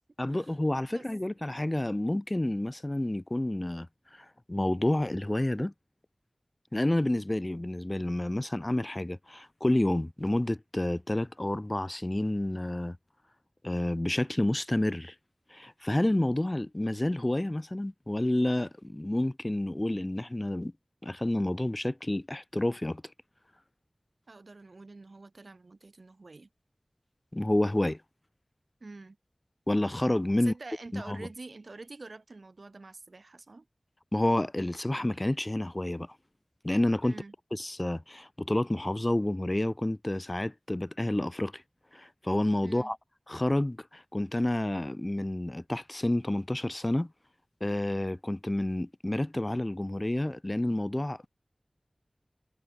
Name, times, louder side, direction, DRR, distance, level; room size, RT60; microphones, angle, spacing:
voice 1, 0.2-3.9 4.1-5.7 6.7-13.0 13.6-15.1 15.5-20.7 21.0-23.0 27.3-28.0 29.7-30.5 30.9-31.3 34.1-36.1 36.6-37.2 37.5-41.6 41.9-43.0 43.3-47.1 47.6-51.3, left 1 dB, 30° left, 0.6 m, -29 dB
voice 2, 24.3-26.5 28.8-29.2 30.3-33.7 37.0-37.3 42.6-42.9, right 3 dB, 80° right, 1.4 m, -46 dB
wide cardioid pair, 55°, 0 cm